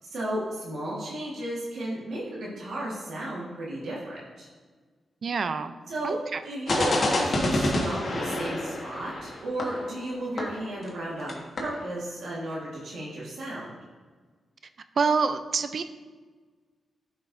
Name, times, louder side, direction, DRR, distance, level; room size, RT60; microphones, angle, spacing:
voice 1, 0.0-4.5 5.9-13.7, right 1 dB, 80° right, -5 dB, 1.5 m, -34 dB
voice 2, 5.2-5.7 6.0-6.4 15.0-15.8, right 5 dB, 60° right, 10 dB, 0.4 m, -26 dB
sound 1, 6.7-11.0 11.3-11.4 11.6-11.8, left 1 dB, 55° left, 1.4 m, -28 dB
11.0 x 5.4 x 2.6 m, 1.4 s
cardioid pair, 75°, 0 cm